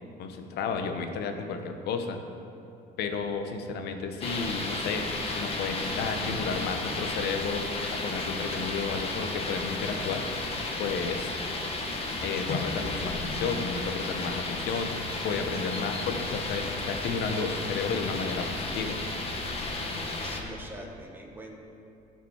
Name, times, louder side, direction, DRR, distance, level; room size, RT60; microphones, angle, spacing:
voice 1, 0.2-2.2 3.0-5.1 5.4-7.6 8.0-10.2 10.8-11.3 12.2-14.9 15.2-19.0, left 5 dB, 75° left, 6 dB, 1.0 m, -32 dB
sound 1, 4.2-20.4, left 2 dB, 35° left, 1.4 m, -33 dB
voice 2, 19.9-21.6, right 1 dB, 10° right, 0 dB, 1.5 m, -44 dB
15.5 x 6.0 x 4.4 m, 2.6 s
cardioid pair, 110°, 17 cm